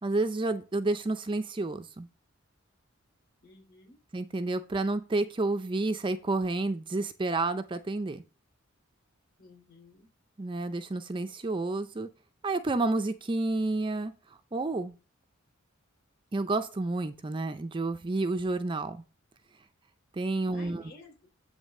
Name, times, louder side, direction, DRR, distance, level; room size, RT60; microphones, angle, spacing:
voice 1, 0.0-2.1 4.1-8.2 10.4-12.1 12.4-14.1 14.5-14.9 16.3-19.0 20.1-20.9, right 2 dB, 25° right, 9 dB, 0.4 m, -30 dB
voice 2, 3.4-4.0 9.4-10.1 20.5-21.3, left 2 dB, 50° left, 1 dB, 3.0 m, -53 dB
9.1 x 3.3 x 6.4 m, 0.33 s
head